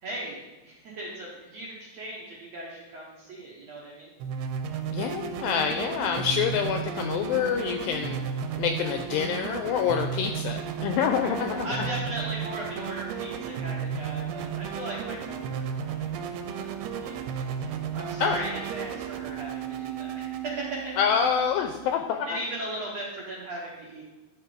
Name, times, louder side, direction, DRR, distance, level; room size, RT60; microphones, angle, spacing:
voice 1, 0.0-4.1 11.1-11.3 11.6-17.3 17.9-21.0 22.2-24.0, right 1 dB, 65° right, -4 dB, 1.6 m, -37 dB
sound 1, 4.2-21.9, right 7 dB, 85° right, 2.6 m, -34 dB
voice 2, 4.9-8.2 8.6-11.7 18.2-18.4 21.0-22.3, left 7 dB, 85° left, 5 dB, 2.0 m, -27 dB
11.0 x 4.6 x 5.0 m, 1.1 s
omnidirectional pair, 4.6 m